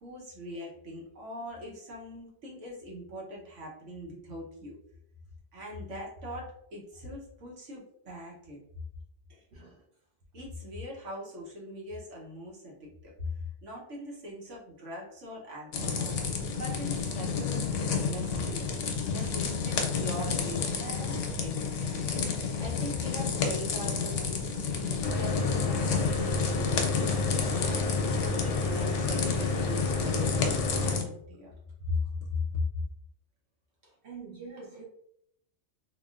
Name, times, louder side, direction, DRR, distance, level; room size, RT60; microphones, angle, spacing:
voice 1, 0.0-4.8 5.5-8.6 9.3-9.4 10.3-16.2 16.5-21.2 21.4-27.2 27.5-31.5 31.8-32.6, left 2 dB, 90° right, -3 dB, 1.3 m, -40 dB
voice 2, 9.5-9.8 19.2-19.4 33.8-34.8, right 4 dB, 65° right, -3 dB, 1.0 m, -45 dB
sound 1, 15.7-31.0, left 5 dB, 90° left, 0.9 m, -31 dB
Mechanical fan, 25.0-31.0, left 3 dB, 70° left, 0.3 m, -30 dB
3.4 x 2.3 x 2.4 m, 0.72 s
omnidirectional pair, 1.2 m